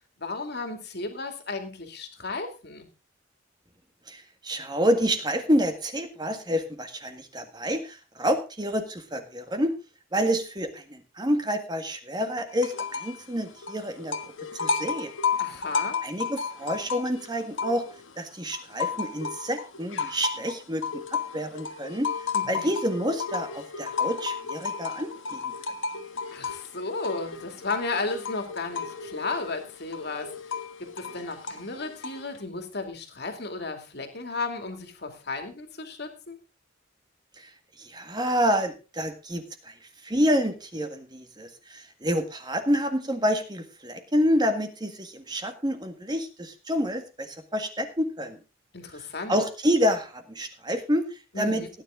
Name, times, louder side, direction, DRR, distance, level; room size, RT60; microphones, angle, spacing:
voice 1, 0.2-2.9 15.4-16.0 22.3-22.7 26.3-30.4 30.8-36.4 48.7-49.3 51.3-51.7, left 3 dB, 55° left, 6 dB, 2.5 m, -34 dB
voice 2, 4.1-9.7 10.1-14.2 14.5-15.1 16.0-17.8 18.2-25.5 37.4-37.5 37.8-39.7 40.0-48.4 49.3-51.6, equal, 20° right, 6 dB, 1.7 m, -28 dB
sound 1, 12.6-13.2 13.5-18.1 18.5-32.4, left 5 dB, 75° left, 1.4 m, -33 dB
16.5 x 9.9 x 3.8 m, 0.32 s
head